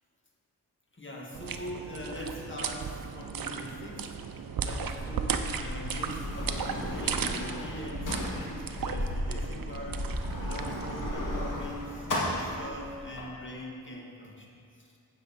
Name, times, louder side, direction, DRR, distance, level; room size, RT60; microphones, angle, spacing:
voice 1, 1.0-14.5, left 1 dB, 30° left, -1 dB, 1.9 m, -42 dB
sound 1, 1.3-11.1, right 6 dB, 65° right, 0.7 m, -36 dB
Sliding door, 4.6-13.2, left 1 dB, 55° left, 2.3 m, -35 dB
9.2 x 8.2 x 4.2 m, 2.5 s
cardioid pair, 55°, 38 cm